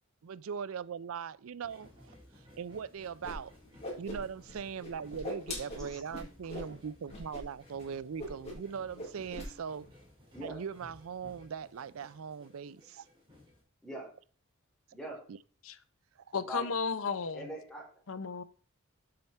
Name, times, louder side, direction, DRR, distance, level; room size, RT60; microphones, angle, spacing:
voice 1, 0.2-2.1 2.6-3.5 4.0-9.9 10.4-13.1 15.3-15.4, right 6 dB, 70° right, 0.4 m, -40 dB
sound 1, 1.6-13.6, left 1 dB, 25° right, 3.3 m, -58 dB
Whoosh swoosh swish, 3.2-3.3 3.6-4.5 4.8-6.7 7.1-7.4 7.7-7.8 8.2-8.7 8.9-9.5, left 1 dB, 30° left, 4.0 m, -40 dB
voice 2, 14.9-15.2 16.4-16.7 17.3-18.0, equal, 5° left, 3.6 m, -42 dB
voice 3, 16.3-17.5 18.1-18.4, left 5 dB, 70° left, 0.7 m, -34 dB
7.6 x 7.1 x 4.4 m
head